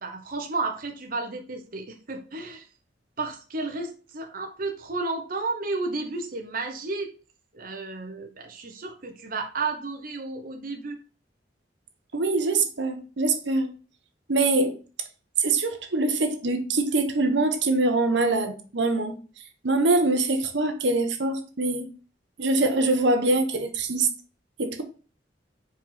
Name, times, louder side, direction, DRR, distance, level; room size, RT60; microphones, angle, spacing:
voice 1, 0.0-2.6 3.2-7.1 7.5-11.0, right 3 dB, 50° right, 1.0 m, -32 dB
voice 2, 12.1-13.7 14.3-14.8 15.4-19.2 19.6-21.9 22.4-24.1 24.6-24.8, right 2 dB, 75° right, 1.1 m, -24 dB
5.0 x 4.4 x 5.6 m
head